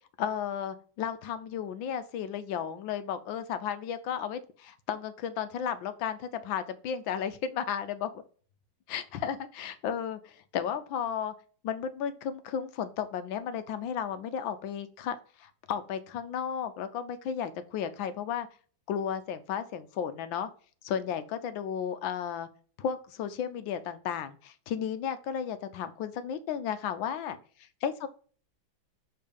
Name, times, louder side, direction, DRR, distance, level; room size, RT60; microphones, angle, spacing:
voice 1, 0.2-8.1 8.9-11.3 11.6-18.5 18.9-20.5 20.8-22.5 22.8-28.1, left 8 dB, 75° left, 11 dB, 1.4 m, -34 dB
6.6 x 3.7 x 5.2 m, 0.42 s
omnidirectional pair, 2.2 m